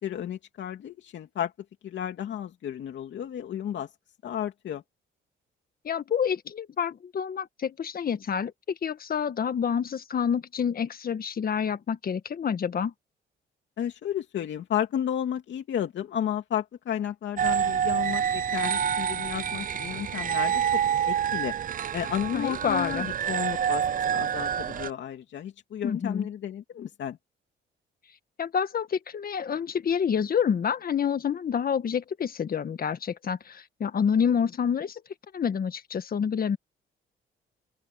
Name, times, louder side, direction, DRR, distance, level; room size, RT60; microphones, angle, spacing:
voice 1, 0.0-1.5 1.8-3.9 4.2-4.8 13.8-20.8 21.1-21.6 21.9-27.2, left 10 dB, 65° left, 2.7 m, -32 dB
voice 2, 5.8-12.9 22.3-23.1 25.8-26.3 28.4-35.0 35.3-36.6, left 7 dB, 50° left, 1.6 m, -28 dB
sound 1, 17.4-24.9, right 8 dB, 45° right, 0.6 m, -27 dB
open air
cardioid pair, 90°, 20 cm